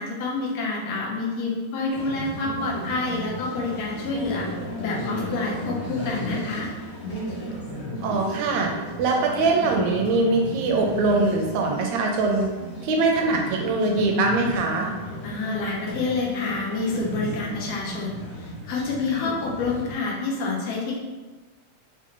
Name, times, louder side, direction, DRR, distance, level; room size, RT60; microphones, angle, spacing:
voice 1, 0.0-4.5 4.8-6.7 15.2-21.0, left 3 dB, 90° left, -3 dB, 1.4 m, -28 dB
sound 1, 1.9-19.9, equal, 60° left, 0.9 m, -35 dB
voice 2, 8.0-8.7 9.0-12.5 12.8-14.9, right 3 dB, 80° right, 1 dB, 1.6 m, -22 dB
5.5 x 2.4 x 2.9 m, 1.2 s
omnidirectional pair, 3.6 m